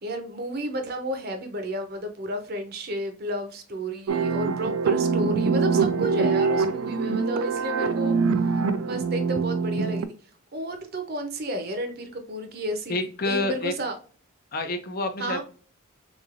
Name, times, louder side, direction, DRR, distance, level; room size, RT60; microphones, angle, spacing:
voice 1, 0.0-8.1 8.8-10.1 10.5-14.0 15.2-15.4, right 1 dB, 45° right, 0.7 m, -32 dB
sound 1, 4.1-10.0, right 5 dB, 80° right, 0.4 m, -24 dB
voice 2, 12.9-13.7 14.5-15.4, left 2 dB, 45° left, 0.5 m, -28 dB
3.7 x 3.1 x 2.4 m
head